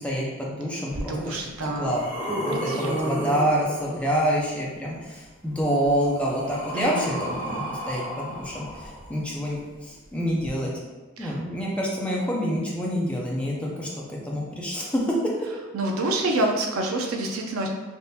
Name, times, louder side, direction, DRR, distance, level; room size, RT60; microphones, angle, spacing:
voice 1, 0.0-1.4 1.8-8.6 9.1-10.7 11.2-15.0, equal, 5° left, -4 dB, 0.5 m, -27 dB
sound 1, 0.9-1.0 1.6-4.3 5.5-9.4 10.4-10.5, right 1 dB, 30° left, 1.5 m, -33 dB
voice 2, 1.0-2.0 2.5-3.4 6.7-7.2 11.2-11.4 15.7-17.7, right 1 dB, 75° right, 2 dB, 0.5 m, -28 dB
3.5 x 2.5 x 2.8 m, 1.2 s
head